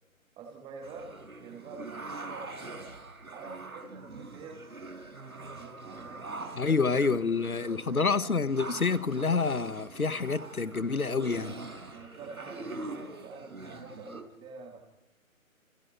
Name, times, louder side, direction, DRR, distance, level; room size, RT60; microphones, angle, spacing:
voice 1, 0.4-2.7 3.3-4.6 5.2-6.2 6.6-8.0 11.9-14.8, right 4 dB, 10° right, 2.7 m, -47 dB
sound 1, 0.8-14.2, right 3 dB, 80° right, 5.3 m, -43 dB
voice 2, 6.5-11.6, left 4 dB, 85° left, 1.7 m, -28 dB
29.0 x 29.0 x 4.6 m
figure-of-eight pair, 145°, 42 cm